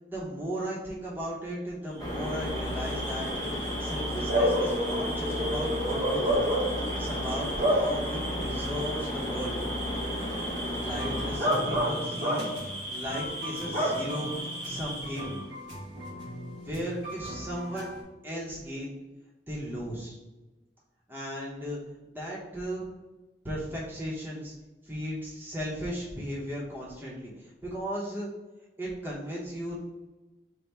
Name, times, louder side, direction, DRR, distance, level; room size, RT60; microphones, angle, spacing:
voice 1, 0.1-6.4 6.9-9.6 10.8-15.3 16.6-17.9 18.2-18.9 19.5-20.2 21.1-21.8 22.0-22.9 23.4-24.5 24.8-28.3 28.8-29.8, equal, 10° right, -5 dB, 0.7 m, -36 dB
sound 1, 2.0-11.4, left 1 dB, 20° left, 0.6 m, -34 dB
Bark / Cricket, 2.1-15.4, equal, 45° right, 0.9 m, -31 dB
sound 2, 10.8-18.0, equal, 75° right, 1.0 m, -40 dB
3.3 x 2.0 x 4.1 m, 1.1 s
head